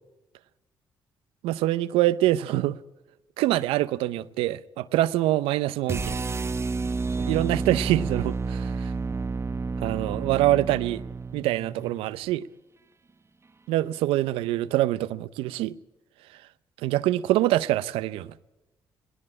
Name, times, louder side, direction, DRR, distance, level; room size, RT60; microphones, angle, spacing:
voice 1, 1.4-2.8 3.4-6.2 7.2-8.9 9.8-11.0 11.3-12.5 13.7-15.7 16.8-18.3, right 15 dB, 85° right, 0.6 m, -25 dB
sound 1, 5.9-12.0, right 4 dB, 30° right, 0.8 m, -30 dB
18.5 x 18.0 x 8.7 m
supercardioid pair, 55°, 9 cm